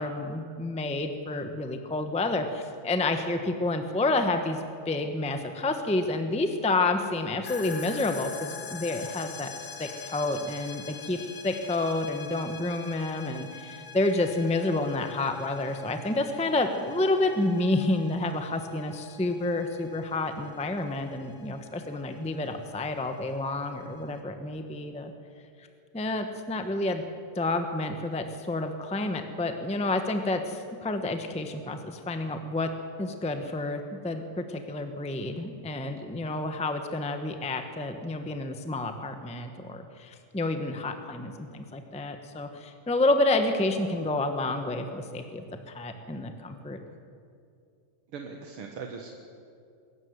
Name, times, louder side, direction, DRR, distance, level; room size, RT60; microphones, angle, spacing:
voice 1, 0.0-9.5 9.8-11.2 11.4-25.1 25.9-27.0 27.3-32.7 33.0-46.8, left 2 dB, 5° left, 6 dB, 0.9 m, -29 dB
sound 1, 7.4-24.2, left 5 dB, 60° left, 1.8 m, -45 dB
voice 2, 48.1-49.1, right 5 dB, 80° right, 3 dB, 2.3 m, -39 dB
22.5 x 14.0 x 9.7 m, 2.3 s
omnidirectional pair, 2.4 m